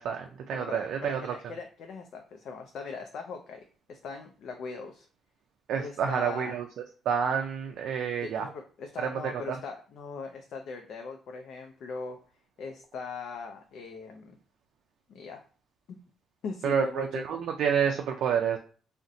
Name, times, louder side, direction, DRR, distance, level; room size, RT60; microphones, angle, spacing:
voice 1, 0.0-1.4 5.7-6.7 7.1-8.5 9.0-9.6 16.6-18.6, right 7 dB, 75° right, 3 dB, 0.3 m, -29 dB
voice 2, 0.5-3.6 3.9-5.1 5.8-6.6 8.2-12.2 12.6-14.4 15.1-15.4 15.9-16.0 16.4-17.2, left 4 dB, 70° left, 4 dB, 0.4 m, -40 dB
2.6 x 2.1 x 3.7 m, 0.41 s
cardioid pair, 90°, 0 cm